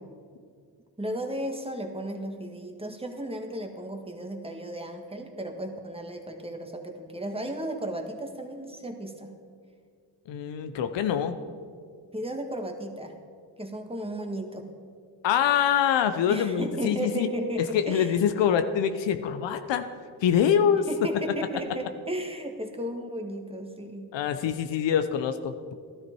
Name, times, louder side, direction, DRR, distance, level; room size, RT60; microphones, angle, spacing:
voice 1, 1.0-9.3 12.1-13.1 13.6-14.7 16.3-18.1 20.9-24.1, right 1 dB, 15° right, 4 dB, 1.7 m, -34 dB
voice 2, 10.3-11.4 15.2-17.3 17.7-19.9 20.2-20.9 24.1-25.5, left 8 dB, 80° left, 9 dB, 0.7 m, -24 dB
13.5 x 12.0 x 4.6 m, 2.2 s
cardioid pair, 65°, 43 cm